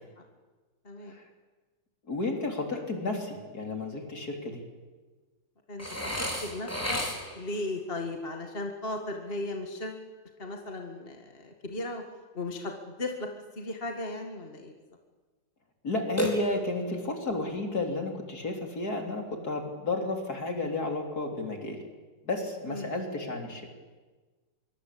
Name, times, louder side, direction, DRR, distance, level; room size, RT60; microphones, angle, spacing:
voice 1, 0.9-1.2 5.7-5.9 6.2-7.0 7.4-10.0 10.4-12.0 12.3-12.7 13.0-13.3 13.6-14.7 22.7-23.0, left 2 dB, 30° left, 3 dB, 2.1 m, -36 dB
voice 2, 2.1-4.6 15.8-21.8 22.2-23.7, left 2 dB, 50° left, 3 dB, 4.1 m, -32 dB
Burping eructation, 5.8-7.5 16.2-17.0, equal, 5° left, 4.4 m, -32 dB
25.0 x 23.5 x 8.6 m, 1.3 s
omnidirectional pair, 2.2 m